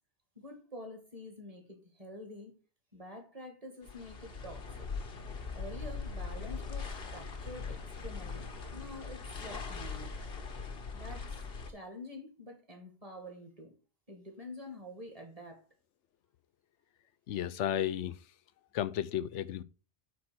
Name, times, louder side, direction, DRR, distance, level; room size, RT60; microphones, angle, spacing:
voice 1, 0.4-2.5 2.9-4.9 5.5-8.4 8.7-10.3 10.9-13.7 14.1-15.6, left 1 dB, 30° right, 2.3 m, -47 dB
sound 1, 3.8-11.7, left 5 dB, 55° left, 1.3 m, -41 dB
voice 2, 17.3-18.1 18.7-19.6, left 11 dB, 85° left, 1.0 m, -33 dB
8.5 x 4.3 x 6.2 m
omnidirectional pair, 1.2 m